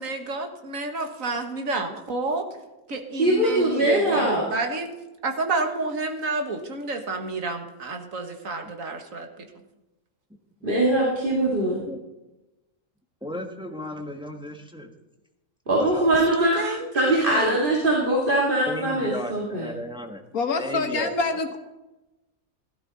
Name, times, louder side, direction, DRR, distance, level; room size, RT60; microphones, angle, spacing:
voice 1, 0.0-2.4 2.9-4.9 5.2-9.5 16.3-17.6, right 3 dB, 70° right, 4 dB, 2.0 m, -30 dB
voice 2, 3.1-4.4 10.6-11.8 15.7-19.7, right 1 dB, 35° right, -4 dB, 2.4 m, -22 dB
voice 3, 13.2-14.9 15.7-16.1 18.7-20.2 20.6-21.1, left 1 dB, 5° right, 3 dB, 1.2 m, -34 dB
voice 4, 20.3-21.6, left 3 dB, 85° left, 6 dB, 1.9 m, -25 dB
17.0 x 12.5 x 4.2 m, 1.0 s
omnidirectional pair, 1.5 m